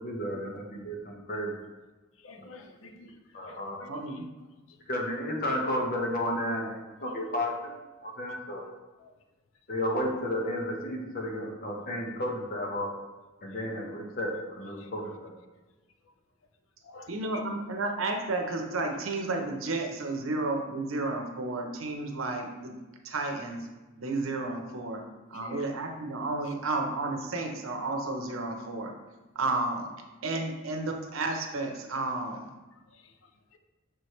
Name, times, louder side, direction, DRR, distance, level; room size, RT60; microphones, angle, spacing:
voice 1, 0.0-1.5 3.3-3.8 4.9-7.7 8.0-8.7 9.7-12.9 13.4-15.3, left 1 dB, 45° left, 0 dB, 1.0 m, -32 dB
voice 2, 2.2-3.2 3.5-4.2 4.7-4.8 7.0-7.1 9.0-9.1 14.8-14.9 16.8-17.2 25.3-25.6 26.4-26.5 32.7-33.1 33.5-33.6, left 3 dB, 70° left, 6 dB, 0.6 m, -51 dB
voice 3, 3.9-4.3 17.1-22.7 23.0-23.7 24.0-25.0 25.3-28.9 29.3-29.9 30.2-32.5, right 2 dB, 80° right, 3 dB, 0.8 m, -32 dB
6.2 x 4.8 x 3.2 m, 1.2 s
head